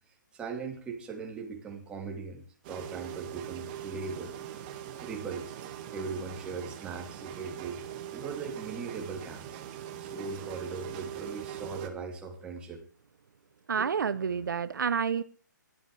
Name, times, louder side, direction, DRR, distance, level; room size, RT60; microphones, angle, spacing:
voice 1, 0.3-4.4 5.0-5.5 5.9-7.8 8.1-9.6 10.0-12.8 13.8-13.9, right 4 dB, 10° right, 2.9 m, -39 dB
sound 1, 2.6-11.9, right 10 dB, 30° right, 2.0 m, -41 dB
voice 2, 13.7-15.2, right 6 dB, 75° right, 0.9 m, -29 dB
21.0 x 12.0 x 3.4 m
hypercardioid pair, 160°, 10 cm